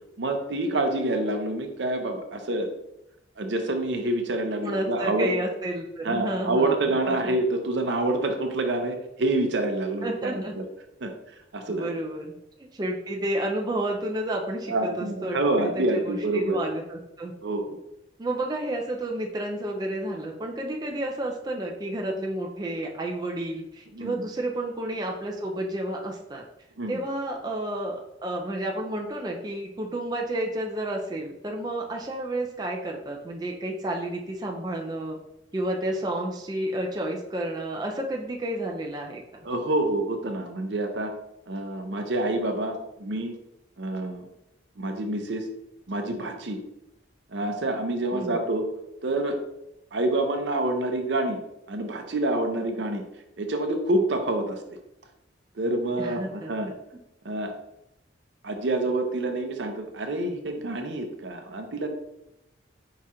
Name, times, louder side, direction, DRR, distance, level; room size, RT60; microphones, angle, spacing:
voice 1, 0.2-2.7 3.4-5.3 6.0-10.6 11.0-11.1 11.5-11.9 14.7-16.6 17.4-17.8 23.9-24.2 26.8-27.0 39.4-41.1 41.5-43.3 43.8-44.3 44.8-45.5 45.9-46.6 47.3-48.6 49.0-49.4 49.9-51.4 51.7-53.0 53.4-54.8 55.6-56.7 57.2-57.5 58.4-61.9, right 2 dB, 70° right, 5 dB, 0.6 m, -27 dB
voice 2, 4.6-7.3 10.0-10.5 11.7-17.3 18.2-26.4 26.9-35.2 35.5-39.2 48.1-48.4 56.0-56.5, right 1 dB, 20° right, 0 dB, 0.4 m, -31 dB
4.9 x 2.4 x 4.2 m, 0.87 s
head